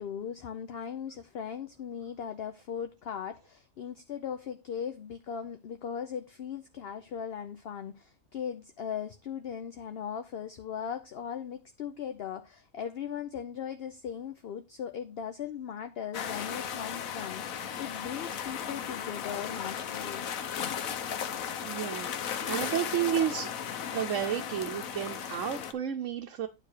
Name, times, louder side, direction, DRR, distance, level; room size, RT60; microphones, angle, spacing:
voice 1, 0.0-20.3, left 8 dB, 55° left, 0.8 m, -38 dB
sound 1, 16.1-25.7, left 8 dB, 85° left, 1.2 m, -36 dB
voice 2, 21.6-23.5 23.9-26.5, right 10 dB, 70° right, 1.1 m, -32 dB
9.6 x 3.3 x 6.6 m
omnidirectional pair, 1.4 m